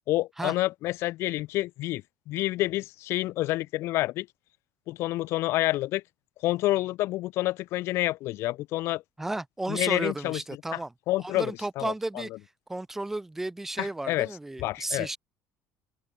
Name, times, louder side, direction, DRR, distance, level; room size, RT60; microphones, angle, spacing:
voice 1, 0.1-4.3 4.9-6.0 6.4-9.0 9.7-10.4 10.7-10.8 11.1-11.9 13.8-14.3 14.6-15.2, left 17 dB, 60° left, 3.2 m, -28 dB
voice 2, 9.2-10.9 11.2-12.3 12.7-15.2, right 2 dB, 5° right, 2.4 m, -33 dB
cardioid pair, 160°, 5 cm